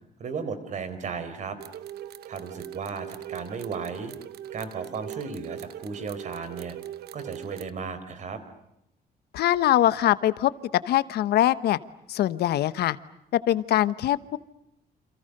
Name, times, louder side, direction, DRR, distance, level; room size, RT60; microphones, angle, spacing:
voice 1, 0.2-1.6 2.3-4.1 4.5-6.8 7.1-8.4, right 5 dB, 45° right, 11 dB, 4.2 m, -35 dB
sound 1, 1.6-7.7, right 11 dB, 75° right, 1.1 m, -40 dB
voice 2, 9.3-10.5 10.8-11.8 12.1-13.0 13.3-14.4, left 13 dB, 75° left, 15 dB, 1.1 m, -23 dB
29.5 x 28.0 x 6.7 m, 0.82 s
cardioid pair, 165°, 17 cm